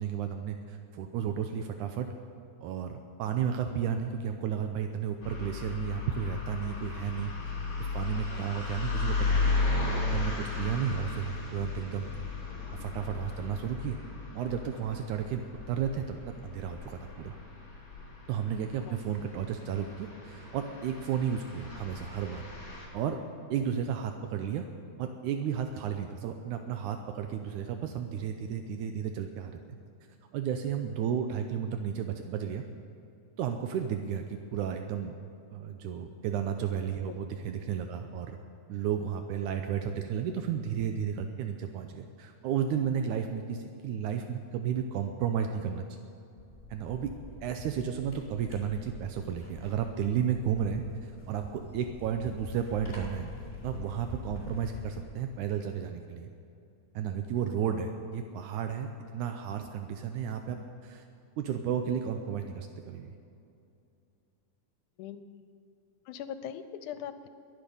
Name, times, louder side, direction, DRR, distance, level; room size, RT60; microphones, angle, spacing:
voice 1, 0.0-2.1 2.6-7.3 7.8-9.5 10.1-12.1 12.7-14.0 14.3-16.2 16.4-17.4 18.3-22.4 22.9-23.2 23.5-24.7 25.0-29.6 30.3-32.6 33.4-35.1 35.5-38.4 38.7-45.8 46.7-47.1 47.4-53.3 53.6-56.3 57.0-61.0 61.4-63.1, right 8 dB, 80° right, 6 dB, 2.1 m, -33 dB
sound 1, 5.2-22.9, left 3 dB, 40° left, 3.8 m, -35 dB
voice 2, 8.2-8.5 18.8-19.0 23.6-23.7 37.1-37.2 37.9-38.0 57.6-57.7 65.0-65.3 66.1-67.3, left 9 dB, 85° left, 12 dB, 2.1 m, -41 dB
sound 2, 46.4-55.0, left 3 dB, 20° left, 3.4 m, -46 dB
22.0 x 9.1 x 5.4 m, 2.7 s
omnidirectional pair, 3.5 m